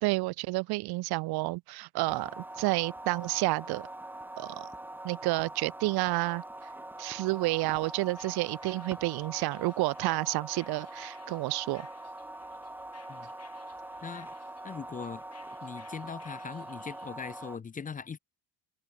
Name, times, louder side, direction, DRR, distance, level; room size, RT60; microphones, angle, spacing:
voice 1, 0.0-3.9 4.4-4.7 5.0-6.4 7.0-11.9, right 22 dB, 65° right, 0.9 m, -30 dB
sound 1, 2.0-17.6, right 1 dB, 5° right, 1.0 m, -43 dB
sound 2, 7.6-17.1, left 8 dB, 35° left, 6.1 m, -60 dB
voice 2, 14.0-14.3 14.6-15.2 15.6-18.2, left 6 dB, 20° left, 0.8 m, -40 dB
open air
cardioid pair, 130°, 40 cm